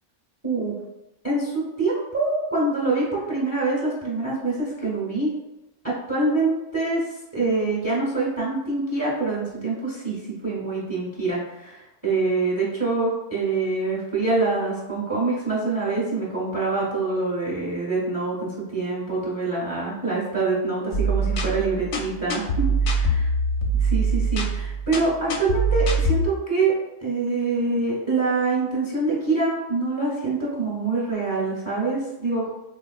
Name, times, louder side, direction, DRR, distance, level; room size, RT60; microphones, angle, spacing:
voice 1, 0.4-0.7 1.2-5.3 5.8-23.0 23.8-26.7 27.0-32.5, right 3 dB, 15° right, -5 dB, 0.7 m, -25 dB
sound 1, 20.9-26.3, right 2 dB, 85° left, 0.9 m, -23 dB
3.8 x 2.3 x 2.3 m, 0.95 s
omnidirectional pair, 1.2 m